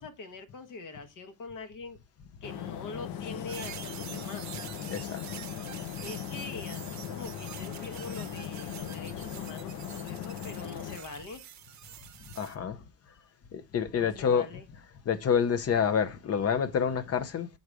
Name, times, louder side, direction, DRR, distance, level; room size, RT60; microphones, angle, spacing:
voice 1, 0.0-2.0 2.4-4.5 6.0-11.4 13.1-13.3 13.9-14.7, left 4 dB, 60° left, 1.2 m, -44 dB
sound 1, 2.4-11.0, left 10 dB, 85° left, 0.7 m, -39 dB
sound 2, 3.5-12.5, right 10 dB, 50° right, 0.6 m, -46 dB
voice 2, 12.4-12.8 13.5-14.5 15.1-17.5, left 7 dB, 45° left, 0.6 m, -27 dB
6.3 x 3.9 x 4.7 m
cardioid pair, 155°, 36 cm